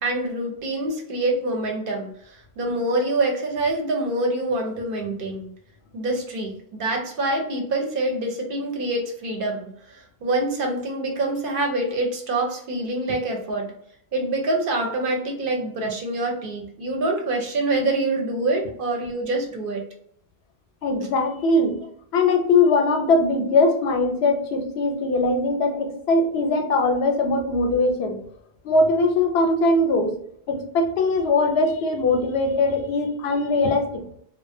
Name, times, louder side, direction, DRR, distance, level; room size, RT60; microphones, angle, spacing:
voice 1, 0.0-5.5 5.9-13.7 14.1-19.8, right 2 dB, 65° right, 2 dB, 0.8 m, -26 dB
voice 2, 20.8-21.8 22.1-28.2 28.6-30.1 30.5-34.1, left 2 dB, 85° left, 4 dB, 0.8 m, -21 dB
2.4 x 2.1 x 2.5 m, 0.68 s
omnidirectional pair, 1.0 m